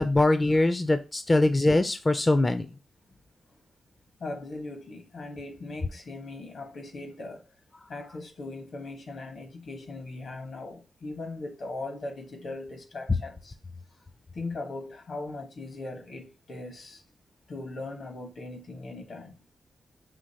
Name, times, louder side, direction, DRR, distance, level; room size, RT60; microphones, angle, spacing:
voice 1, 0.0-2.7, left 2 dB, 30° left, 0.4 m, -22 dB
voice 2, 4.2-7.4 7.9-13.5 14.3-17.0 17.5-19.3, left 2 dB, 75° left, 1.3 m, -39 dB
5.1 x 2.9 x 2.8 m
cardioid pair, 65°, 0 cm